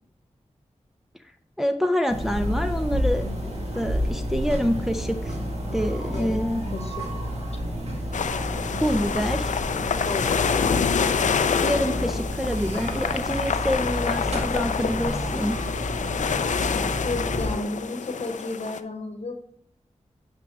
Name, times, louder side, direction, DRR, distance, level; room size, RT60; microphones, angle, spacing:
voice 1, 1.6-5.3 5.7-6.6 8.8-9.5 11.6-15.6, equal, 5° right, 5 dB, 0.6 m, -26 dB
sound 1, 2.1-17.5, equal, 60° right, 2.0 m, -30 dB
voice 2, 6.1-7.2 10.0-11.0 16.7-19.5, left 2 dB, 55° left, 6 dB, 1.1 m, -33 dB
sound 2, 8.1-18.8, left 6 dB, 80° left, 0.4 m, -27 dB
9.3 x 4.8 x 3.9 m, 0.64 s
cardioid pair, 50°, 12 cm